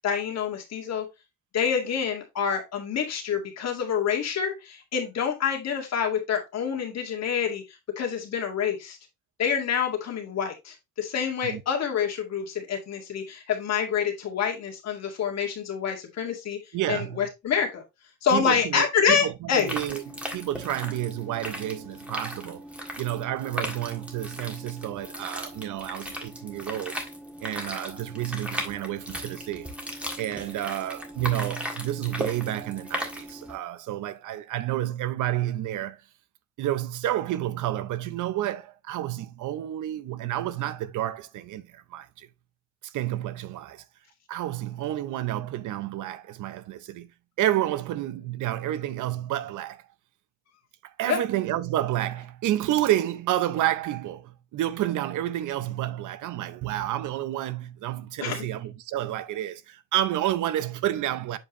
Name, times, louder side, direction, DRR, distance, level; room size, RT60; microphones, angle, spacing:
voice 1, 0.0-1.1 1.5-7.6 8.0-9.0 9.4-16.6 16.9-17.8 18.2-19.7 51.1-51.2 58.2-58.5, left 7 dB, 60° left, 2.0 m, -27 dB
voice 2, 16.7-17.3 18.3-22.6 23.0-27.0 27.4-29.7 30.2-36.0 36.6-42.3 42.8-43.8 44.3-47.1 47.4-49.8 50.8-61.4, right 13 dB, 80° right, 0.7 m, -30 dB
sound 1, 19.5-33.6, equal, 5° right, 1.6 m, -37 dB
7.7 x 4.5 x 3.0 m
cardioid pair, 125°, 30 cm